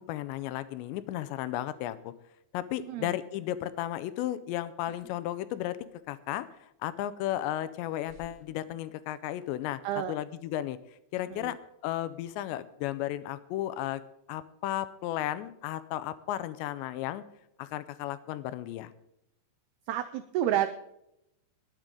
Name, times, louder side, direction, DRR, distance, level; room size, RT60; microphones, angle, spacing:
voice 1, 0.0-2.1 2.5-5.8 6.1-6.5 6.8-9.8 10.1-10.8 11.1-11.6 11.8-14.0 14.3-17.2 17.6-18.9, left 13 dB, 80° left, 14 dB, 2.8 m, -34 dB
sound 1, 4.8-5.2 5.5-6.2 7.2-7.3 8.0-9.4 9.7-10.1, left 1 dB, 35° right, 1.2 m, -56 dB
voice 2, 9.8-10.2 11.3-11.5 19.9-20.7, right 12 dB, 85° right, 10 dB, 2.2 m, -30 dB
21.0 x 9.0 x 3.7 m, 0.81 s
omnidirectional pair, 5.3 m